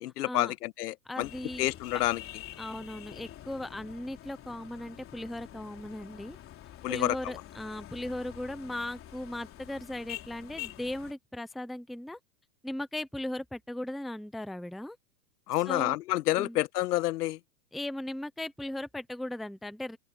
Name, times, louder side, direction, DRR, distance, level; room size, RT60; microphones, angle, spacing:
voice 1, 0.0-1.3 1.6-2.2 6.8-7.2 15.5-17.4, left 16 dB, 65° left, 1.3 m, -29 dB
voice 2, 1.1-1.7 2.6-6.4 6.9-12.2 12.6-15.0 15.7-16.0 16.4-16.6 17.7-20.0, left 1 dB, ahead, 0.7 m, -37 dB
sound 1, 1.2-11.1, left 13 dB, 25° left, 3.6 m, -47 dB
open air
hypercardioid pair, 140°, 50 cm